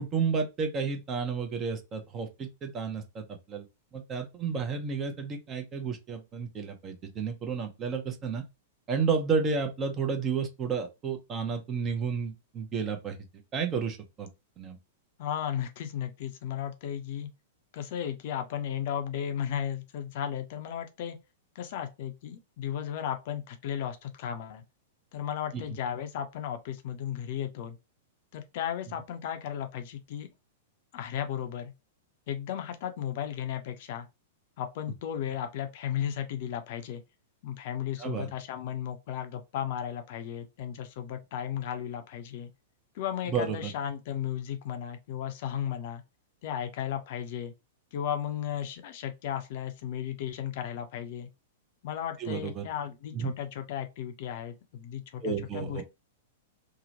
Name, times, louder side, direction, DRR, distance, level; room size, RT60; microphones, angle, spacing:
voice 1, 0.0-3.6 3.9-8.4 8.9-13.2 13.5-14.3 14.6-14.8 25.5-25.6 38.0-38.3 43.3-43.7 52.2-52.7 53.1-53.3 55.2-55.8, right 5 dB, 25° right, 0.6 m, -31 dB
voice 2, 15.2-17.3 17.7-21.2 21.5-24.6 25.1-27.8 28.3-30.3 30.9-31.7 32.3-34.1 34.6-37.0 37.4-42.5 42.9-46.0 46.4-47.5 47.9-51.3 51.8-55.8, left 9 dB, 50° left, 0.5 m, -35 dB
2.8 x 2.1 x 2.7 m
figure-of-eight pair, 100°, 0 cm